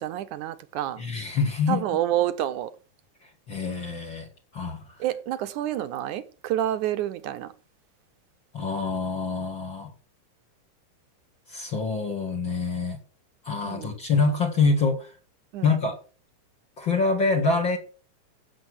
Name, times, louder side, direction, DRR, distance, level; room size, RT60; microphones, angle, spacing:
voice 1, 0.0-1.0 1.7-2.7 5.0-7.5 13.6-14.0 15.5-15.7, right 12 dB, 70° right, 2.5 m, -28 dB
voice 2, 1.0-1.8 3.5-4.3 4.5-4.8 8.5-9.9 11.5-13.0 13.4-15.1 15.6-15.9 16.8-17.8, left 4 dB, 40° left, 2.9 m, -25 dB
16.5 x 7.5 x 6.4 m
omnidirectional pair, 3.8 m